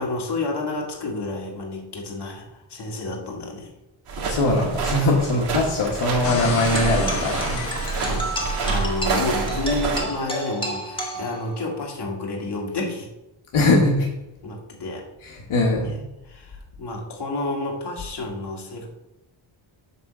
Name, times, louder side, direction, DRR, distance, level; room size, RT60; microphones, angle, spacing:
voice 1, 0.0-3.7 8.0-13.1 14.4-15.0 15.8-16.0 16.3-18.9, left 2 dB, 50° left, 0 dB, 2.0 m, -30 dB
sound 1, 4.1-10.0, right 4 dB, 85° right, 2.4 m, -27 dB
voice 2, 4.2-7.6 7.8-8.1 13.5-14.1 15.2-15.9, left 2 dB, 70° left, -1 dB, 1.5 m, -21 dB
sound 2, 6.2-9.4, left 2 dB, 25° left, 1.5 m, -31 dB
sound 3, 6.7-11.8, right 1 dB, 10° left, 1.6 m, -31 dB
9.2 x 3.5 x 6.7 m, 0.93 s
wide cardioid pair, 120°, 50 cm